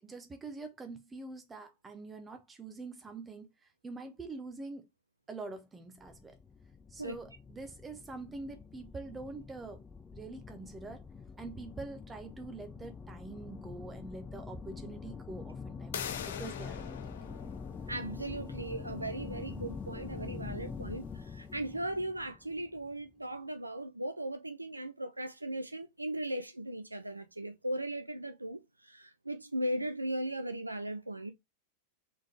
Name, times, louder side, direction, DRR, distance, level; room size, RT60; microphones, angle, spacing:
voice 1, 0.0-4.9 5.3-6.4 6.9-9.8 10.1-11.0 11.4-17.2, right 3 dB, 15° right, 0.8 m, -45 dB
sound 1, 6.0-23.0, left 5 dB, 20° left, 0.6 m, -45 dB
sound 2, 15.9-21.5, left 9 dB, 60° left, 0.6 m, -45 dB
voice 2, 17.9-31.3, right 1 dB, 85° right, 0.5 m, -38 dB
4.3 x 3.7 x 3.2 m
figure-of-eight pair, 90°, 0 cm